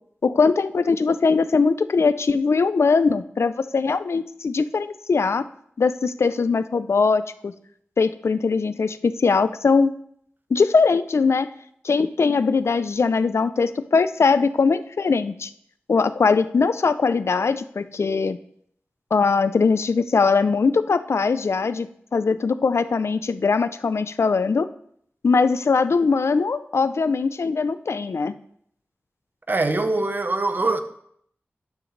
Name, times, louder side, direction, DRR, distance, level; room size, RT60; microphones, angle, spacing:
voice 1, 0.2-5.4 5.8-7.5 8.0-9.9 10.5-11.5 11.8-15.5 15.9-18.4 19.1-24.7 25.2-28.3, left 4 dB, 80° left, 0.5 m, -21 dB
voice 2, 29.5-30.8, right 2 dB, 45° right, 1.0 m, -23 dB
12.5 x 9.7 x 3.3 m
wide cardioid pair, 75°, 5 cm